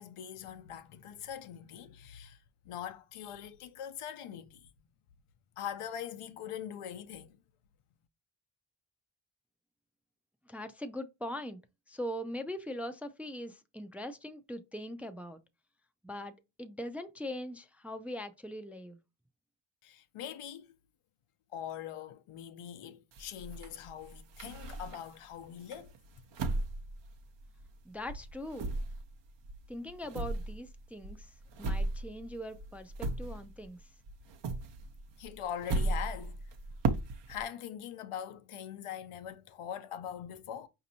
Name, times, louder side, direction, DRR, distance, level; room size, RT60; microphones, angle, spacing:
voice 1, 0.0-2.4 2.7-4.6 5.6-7.4 19.8-20.7 21.5-25.9 35.2-36.3 37.3-40.7, left 9 dB, 90° left, 0.7 m, -42 dB
voice 2, 10.5-11.6 11.9-15.4 16.0-19.0 27.8-28.7 29.7-33.8, left 1 dB, 5° right, 0.3 m, -41 dB
sound 1, 23.1-25.3 25.7-27.8 28.1-33.8 34.0-37.4, right 2 dB, 60° right, 0.7 m, -36 dB
5.1 x 2.8 x 2.7 m
cardioid pair, 80°, 49 cm